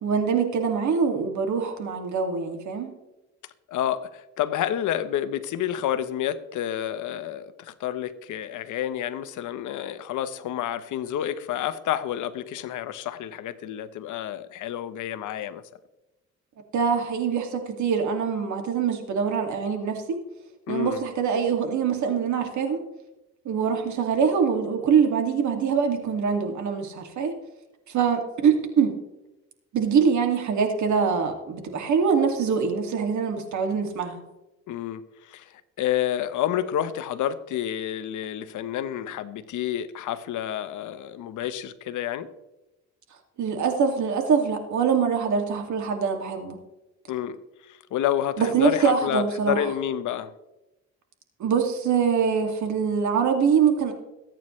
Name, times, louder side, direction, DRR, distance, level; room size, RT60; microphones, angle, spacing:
voice 1, 0.0-2.9 16.7-20.2 20.7-22.8 23.4-27.4 27.9-28.9 29.7-34.2 43.4-46.6 48.4-49.7 51.4-53.9, right 6 dB, 70° right, 2.4 m, -24 dB
voice 2, 3.7-15.6 20.7-21.0 34.7-42.3 47.1-50.3, left 11 dB, 80° left, 1.0 m, -29 dB
22.0 x 9.0 x 3.2 m
cardioid pair, 90°, 30 cm